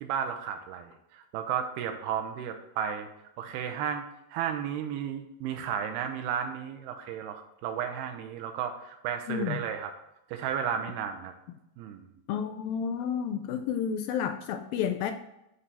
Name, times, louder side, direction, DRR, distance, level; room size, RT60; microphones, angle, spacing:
voice 1, 0.0-3.1 3.4-4.0 4.3-9.9 10.3-11.3 11.8-12.1, right 8 dB, 85° right, 5 dB, 2.6 m, -33 dB
voice 2, 9.3-9.6 12.3-15.1, left 8 dB, 80° left, 7 dB, 2.1 m, -31 dB
9.8 x 3.3 x 5.4 m, 0.84 s
omnidirectional pair, 4.4 m